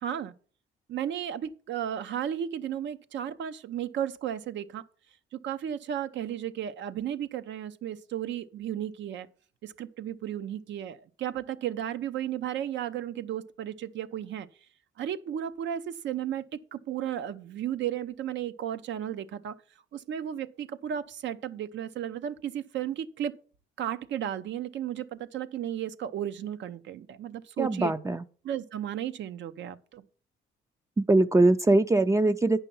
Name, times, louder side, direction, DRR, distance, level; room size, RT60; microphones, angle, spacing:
voice 1, 0.0-0.3 0.9-4.8 5.3-9.3 9.6-14.5 15.0-19.6 19.9-23.3 23.8-27.9 28.4-30.0, right 10 dB, 70° right, 0.6 m, -34 dB
voice 2, 27.6-28.2 31.0-32.6, right 2 dB, 15° right, 0.4 m, -22 dB
9.2 x 5.6 x 5.4 m
cardioid pair, 90°, 20 cm